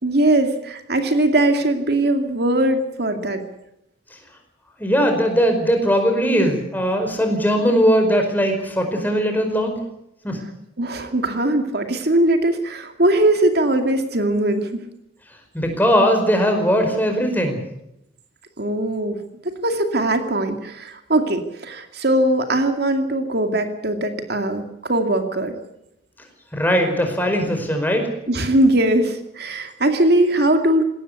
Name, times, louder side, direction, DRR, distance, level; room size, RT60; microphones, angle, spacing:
voice 1, 0.0-3.4 10.8-14.8 18.6-19.2 19.4-25.6 28.3-30.8, right 1 dB, 60° right, 6 dB, 2.4 m, -20 dB
voice 2, 4.8-9.8 10.2-10.4 15.5-17.6 26.5-28.1, equal, 10° left, 4 dB, 5.0 m, -19 dB
20.5 x 18.0 x 8.4 m, 0.81 s
head